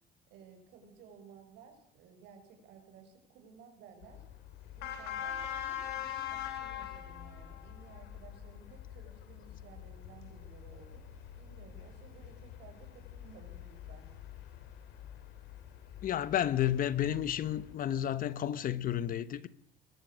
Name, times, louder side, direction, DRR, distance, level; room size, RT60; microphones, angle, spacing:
voice 1, 0.3-4.2 4.8-11.0 11.4-14.1, right 5 dB, 85° right, 6.2 m, -56 dB
sound 1, 4.0-17.7, left 10 dB, 85° left, 3.6 m, -44 dB
voice 2, 16.0-19.5, left 11 dB, 55° left, 1.2 m, -31 dB
22.0 x 18.0 x 6.4 m
cardioid pair, 110°, 17 cm